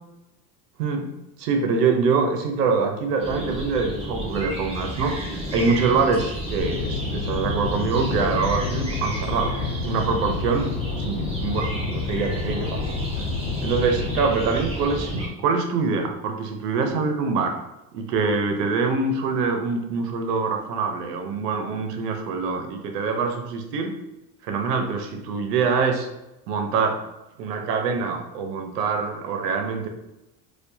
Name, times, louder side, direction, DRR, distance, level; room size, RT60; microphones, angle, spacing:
voice 1, 0.8-1.1 1.4-5.2 5.5-9.5 9.8-13.1 13.6-17.6 17.9-24.0 24.4-26.1 26.5-27.0 27.4-29.9, right 4 dB, 85° right, 5 dB, 0.7 m, -24 dB
sound 1, 3.2-15.3, equal, 15° right, 1.0 m, -32 dB
sound 2, 6.6-14.2, left 4 dB, 80° left, 0.6 m, -30 dB
4.4 x 2.4 x 2.6 m, 0.95 s
hypercardioid pair, 85°, 47 cm